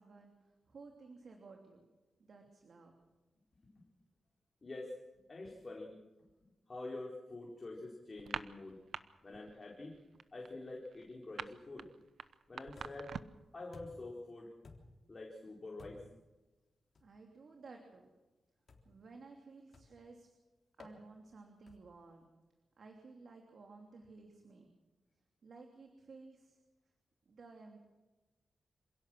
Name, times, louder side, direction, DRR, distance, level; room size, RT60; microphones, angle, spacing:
voice 1, 0.0-1.9 2.2-2.9 17.0-18.1 18.8-20.3 20.8-22.3 22.8-24.7 25.4-26.6 27.2-27.8, right 3 dB, 60° right, 2 dB, 3.1 m, -55 dB
voice 2, 4.6-5.0 5.3-6.0 6.7-8.8 9.2-9.9 10.3-11.9 12.5-13.1 13.5-14.5 15.1-16.0, left 2 dB, 35° left, -2 dB, 4.2 m, -46 dB
sound 1, 8.2-9.0 9.3-9.6 9.9-13.5, right 7 dB, 80° right, 0.9 m, -44 dB
sound 2, 12.8-13.2 13.7-14.2 14.6-15.1 15.8-16.2 16.9-17.2 18.7-19.0 19.7-20.1 20.8-21.0 21.7-22.0, left 3 dB, 55° left, 3.7 m, -57 dB
27.0 x 17.0 x 6.3 m, 1.1 s
wide cardioid pair, 100°, 0 cm